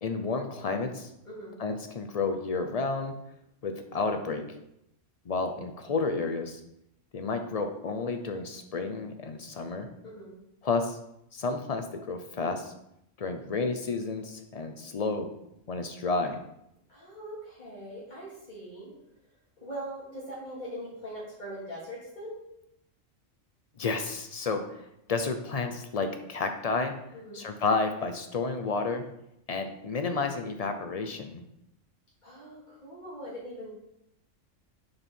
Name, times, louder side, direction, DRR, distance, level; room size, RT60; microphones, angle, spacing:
voice 1, 0.0-1.1 1.6-3.1 3.6-4.4 5.3-6.6 7.1-9.9 10.6-11.0 11.3-12.7 13.2-15.3 15.7-16.4 23.8-24.6 25.1-26.9 27.3-29.1 29.5-31.4, left 4 dB, 55° left, 6 dB, 0.4 m, -31 dB
voice 2, 1.2-1.6 10.0-10.4 16.9-18.9 19.6-22.4 27.1-27.4 32.2-33.7, equal, 35° left, -7 dB, 2.9 m, -41 dB
6.3 x 4.5 x 4.2 m, 0.79 s
omnidirectional pair, 1.3 m